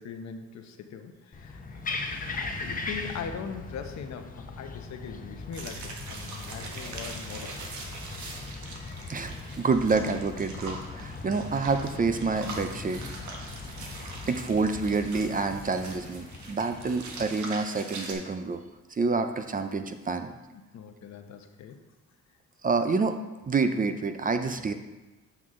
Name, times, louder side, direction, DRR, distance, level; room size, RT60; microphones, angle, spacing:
voice 1, 0.0-7.6 20.5-21.8, left 6 dB, 65° left, 6 dB, 0.9 m, -41 dB
sound 1, 1.3-17.3, left 3 dB, 30° left, 0.9 m, -39 dB
sound 2, 5.5-18.1, right 3 dB, 70° right, 1.3 m, -42 dB
voice 2, 9.1-13.0 14.3-18.6 18.9-20.4 22.6-23.2 23.5-24.7, right 4 dB, 30° right, 8 dB, 0.5 m, -28 dB
8.2 x 5.9 x 3.7 m, 1.1 s
cardioid pair, 90°, 30 cm